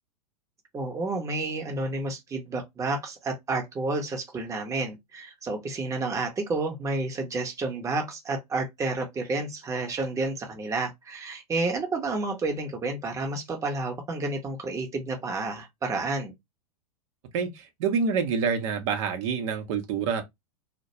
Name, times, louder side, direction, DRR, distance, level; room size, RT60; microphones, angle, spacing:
voice 1, 0.7-16.3, right 3 dB, 15° right, 0.7 m, -30 dB
voice 2, 17.3-20.2, right 6 dB, 50° right, 0.7 m, -27 dB
2.3 x 2.1 x 2.8 m
hypercardioid pair, 100°, 20 cm